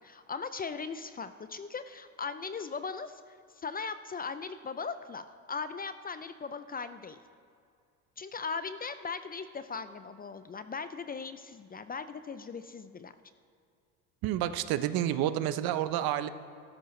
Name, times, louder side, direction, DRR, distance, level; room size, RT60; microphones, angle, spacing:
voice 1, 0.0-7.2 8.2-13.1, left 5 dB, 20° left, 11 dB, 0.5 m, -39 dB
voice 2, 14.2-16.3, right 12 dB, 55° right, 12 dB, 0.8 m, -29 dB
15.0 x 13.0 x 3.2 m, 2.3 s
hypercardioid pair, 80°, 43 cm